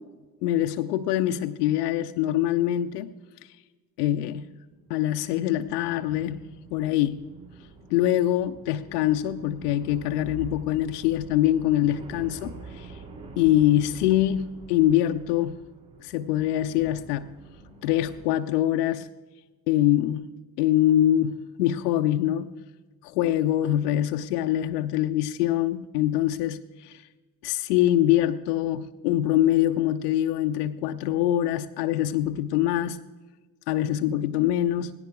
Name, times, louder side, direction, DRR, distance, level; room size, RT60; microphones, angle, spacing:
voice 1, 0.4-3.1 4.0-4.5 4.9-6.4 6.7-7.2 7.9-12.9 13.4-15.6 16.0-17.3 17.8-19.1 19.7-20.3 20.6-22.5 23.0-27.0 27.4-33.0 33.7-34.9, left 12 dB, 75° left, 6 dB, 0.6 m, -24 dB
sound 1, 4.7-18.3, right 4 dB, 55° right, 5.5 m, -46 dB
18.0 x 16.5 x 3.5 m, 1.3 s
figure-of-eight pair, 50°, 47 cm